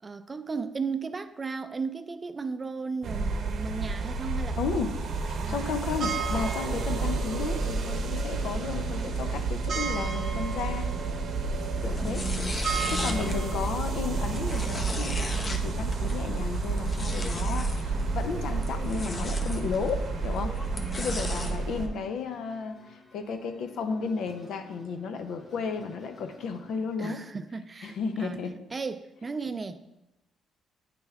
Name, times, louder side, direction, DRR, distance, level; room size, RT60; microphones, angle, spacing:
voice 1, 0.0-4.6 5.4-5.7 12.0-13.4 20.8-21.5 27.0-28.4 28.7-29.8, right 4 dB, 30° right, 0.4 m, -36 dB
sound 1, 3.0-21.9, right 4 dB, 60° right, 0.8 m, -30 dB
voice 2, 4.6-4.9 5.3-10.9 11.8-12.2 12.9-20.6 21.0-27.2 27.8-28.6, left 5 dB, 75° left, 0.6 m, -33 dB
sound 2, 7.6-27.0, left 5 dB, 50° left, 1.3 m, -51 dB
sound 3, 11.8-21.6, left 2 dB, 30° left, 0.7 m, -37 dB
9.0 x 3.4 x 3.4 m
cardioid pair, 90°, 0 cm